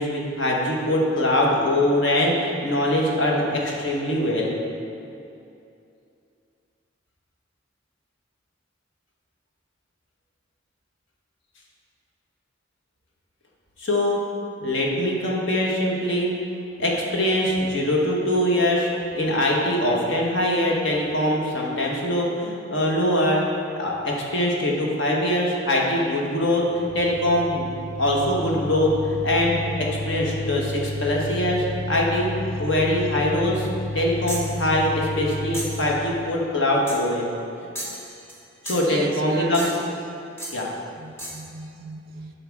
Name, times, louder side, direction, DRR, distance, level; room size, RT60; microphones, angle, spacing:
voice 1, 0.0-4.6 13.8-14.2 14.6-16.3 16.8-23.4 23.8-32.3 32.6-33.7 33.9-37.3 38.6-39.6 40.5-40.7, left 1 dB, 65° left, -2 dB, 1.3 m, -23 dB
sound 1, 26.6-36.4, left 2 dB, 40° left, 0.5 m, -32 dB
sound 2, 34.3-34.6 35.5-35.9 36.9-37.1 37.7-38.4 38.7-39.0 39.5-39.9 40.4-40.6 41.2-41.5, right 1 dB, 15° left, 1.0 m, -35 dB
voice 2, 38.8-39.9 41.0-42.4, right 4 dB, 45° right, 8 dB, 0.4 m, -35 dB
10.0 x 5.7 x 3.6 m, 2.6 s
head